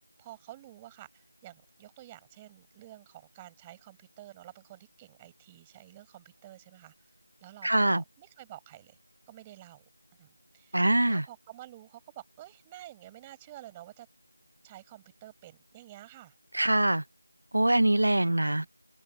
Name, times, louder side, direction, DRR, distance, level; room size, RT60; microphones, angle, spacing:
voice 1, 0.2-7.1 7.4-9.0 9.3-9.9 10.2-14.1 14.6-16.3, right 15 dB, 10° right, 7.9 m, -50 dB
voice 2, 7.6-8.0 10.7-11.2 16.5-17.0 17.5-18.7, right 1 dB, 65° right, 1.1 m, -24 dB
open air
figure-of-eight pair, 170°, 0 cm